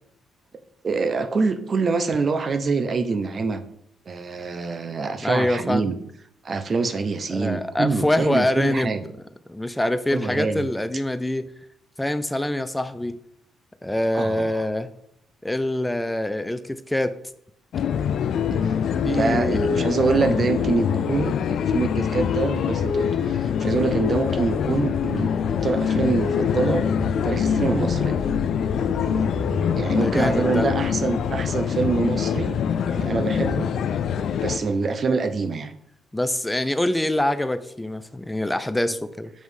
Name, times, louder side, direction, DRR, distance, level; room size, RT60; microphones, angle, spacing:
voice 1, 0.8-3.6 4.1-6.0 6.4-9.1 10.1-10.7 14.1-14.6 18.6-18.8 19.1-26.9 27.2-28.2 29.8-32.6 32.9-33.7 34.4-35.7, right 4 dB, 45° right, 10 dB, 0.6 m, -25 dB
voice 2, 5.2-5.9 7.3-9.0 9.5-11.5 12.0-13.2 13.8-14.9 15.4-17.2 19.0-20.0 30.0-30.7 36.1-39.3, left 1 dB, 10° left, 10 dB, 0.5 m, -25 dB
sound 1, 17.7-34.6, left 8 dB, 70° left, 0.4 m, -24 dB
sound 2, 23.9-31.5, left 3 dB, 50° left, 0.8 m, -33 dB
6.2 x 3.1 x 5.4 m, 0.74 s
cardioid pair, 90°, 0 cm